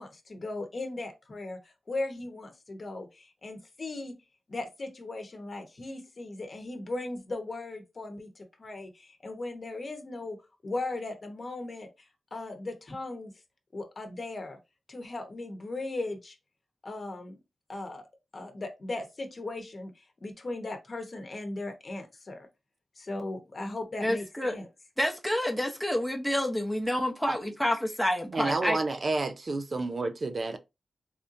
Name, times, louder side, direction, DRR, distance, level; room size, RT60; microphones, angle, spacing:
voice 1, 0.0-4.1 4.5-13.3 13.7-14.6 14.9-16.4 16.8-17.4 17.7-18.1 18.3-22.5 23.0-24.7, left 2 dB, 50° left, 1.0 m, -38 dB
voice 2, 24.0-24.6 25.0-28.8, left 1 dB, ahead, 0.9 m, -28 dB
voice 3, 28.3-30.6, right 3 dB, 50° right, 0.4 m, -30 dB
3.4 x 2.7 x 2.6 m
cardioid pair, 70°, 0 cm